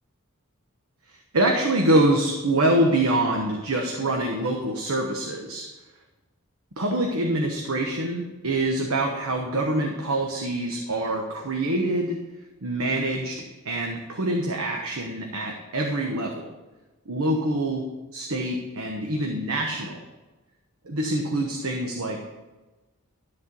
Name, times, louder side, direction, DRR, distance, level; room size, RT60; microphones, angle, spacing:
voice 1, 1.1-5.7 6.8-12.2 12.6-16.5 17.1-17.8 18.1-20.0 20.8-22.2, right 1 dB, 80° right, 1 dB, 1.1 m, -25 dB
13.0 x 4.4 x 6.7 m, 1.2 s
head